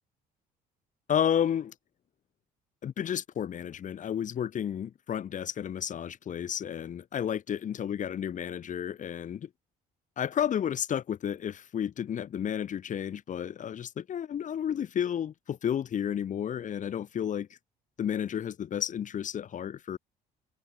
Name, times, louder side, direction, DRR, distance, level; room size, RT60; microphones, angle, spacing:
voice 1, 1.1-1.7 2.8-9.5 10.2-17.5 18.0-20.0, left 9 dB, 50° left, 3.3 m, -32 dB
cardioid pair, 110°, 17 cm